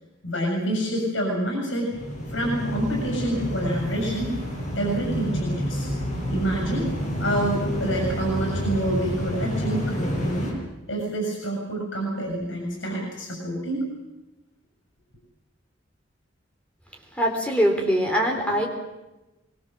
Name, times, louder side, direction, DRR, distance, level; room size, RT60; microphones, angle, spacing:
voice 1, 0.2-1.9 2.3-4.4 4.7-5.9 6.3-6.9 7.2-10.5 10.9-13.8, right 1 dB, 85° left, 1 dB, 7.2 m, -27 dB
sound 1, 1.9-10.5, equal, 40° left, 7.9 m, -29 dB
voice 2, 17.1-18.7, equal, 5° left, 1 dB, 3.7 m, -22 dB
24.5 x 22.0 x 7.6 m, 1.0 s
head